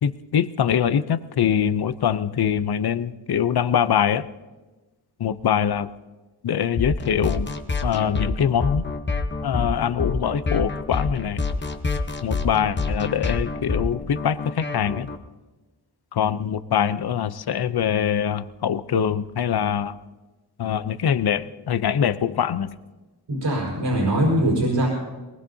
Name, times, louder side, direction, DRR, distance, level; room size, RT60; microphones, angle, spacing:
voice 1, 0.0-4.2 5.2-5.9 6.4-7.5 7.8-8.8 9.4-11.4 12.2-15.1 16.1-20.0 20.6-22.7, left 8 dB, 65° left, 14 dB, 0.6 m, -23 dB
sound 1, 6.8-15.2, left 3 dB, 25° left, 1.0 m, -27 dB
voice 2, 23.3-24.9, right 1 dB, 85° right, -3 dB, 4.7 m, -21 dB
22.5 x 19.5 x 2.8 m, 1.2 s
wide cardioid pair, 115°, 41 cm